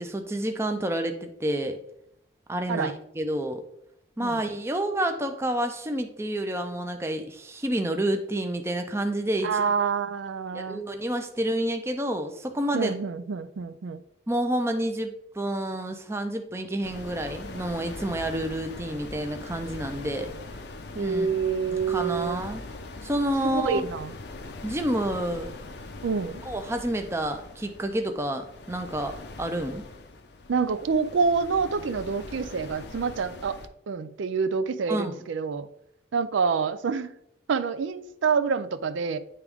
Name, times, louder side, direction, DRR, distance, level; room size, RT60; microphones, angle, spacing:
voice 1, 0.0-1.8 2.5-3.6 4.2-9.6 10.5-12.9 14.3-20.3 20.9-21.3 21.7-22.6 23.0-23.8 24.6-25.5 26.5-29.8 34.9-35.2, right 1 dB, 15° right, 5 dB, 0.5 m, -29 dB
voice 2, 9.4-10.8 12.7-14.0 21.0-22.4 23.4-24.1 26.0-26.4 30.5-33.6 33.9-35.7 36.1-37.1 37.5-39.2, right 5 dB, 75° right, 12 dB, 0.4 m, -27 dB
sound 1, 16.8-33.7, left 2 dB, 55° left, 0.6 m, -41 dB
9.7 x 3.5 x 3.5 m, 0.76 s
head